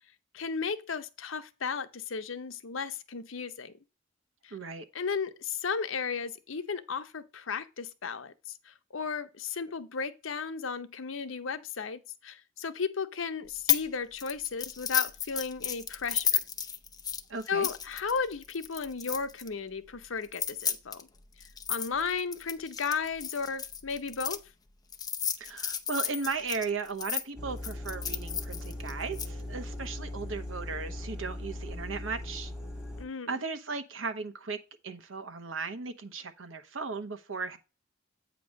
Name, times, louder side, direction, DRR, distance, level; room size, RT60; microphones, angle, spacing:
voice 1, 0.3-3.7 4.4-4.6 4.9-16.4 17.5-21.1 21.7-24.4 33.0-33.3, left 5 dB, 85° left, 0.8 m, -34 dB
voice 2, 4.5-4.9 17.3-17.7 25.4-32.5 33.3-37.6, right 4 dB, 90° right, 1.0 m, -36 dB
sound 1, 13.7-13.9 14.2-19.5 20.2-24.4 24.9-27.2 27.6-29.3, left 8 dB, 20° left, 0.6 m, -32 dB
sound 2, 27.4-33.1, left 1 dB, 5° right, 1.8 m, -39 dB
8.5 x 3.0 x 6.3 m
head